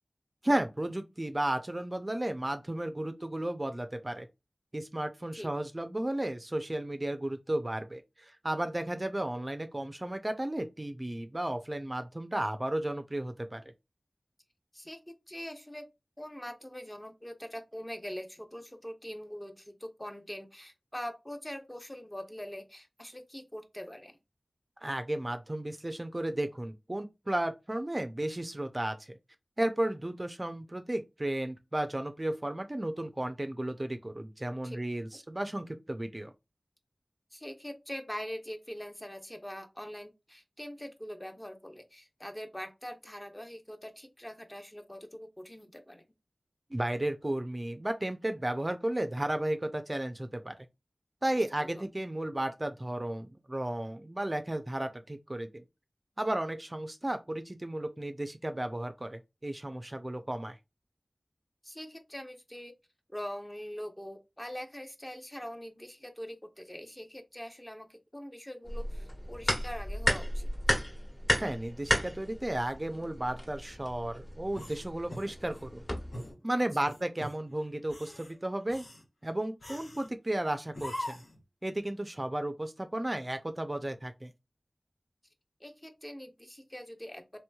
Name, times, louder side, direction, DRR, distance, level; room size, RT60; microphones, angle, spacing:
voice 1, 0.4-4.3 4.7-13.6 24.8-29.1 29.6-36.3 46.7-50.6 51.2-55.6 56.2-60.6 71.4-75.8 76.4-78.8 79.2-81.2 81.6-84.3, right 1 dB, 30° right, 0.4 m, -34 dB
voice 2, 14.7-15.9 16.2-24.2 34.6-34.8 37.3-46.0 51.3-51.8 61.6-62.7 63.1-70.5 76.6-76.7 85.6-87.2, equal, 20° left, 0.7 m, -43 dB
sound 1, 68.7-76.3, equal, 45° left, 1.3 m, -34 dB
sound 2, 74.5-75.7 76.1-76.4 76.8-77.4 77.8-78.3 78.7-79.0 79.6-80.1 80.7-81.4, left 1 dB, 75° left, 1.0 m, -42 dB
3.0 x 2.9 x 2.2 m
wide cardioid pair, 45°, 0 cm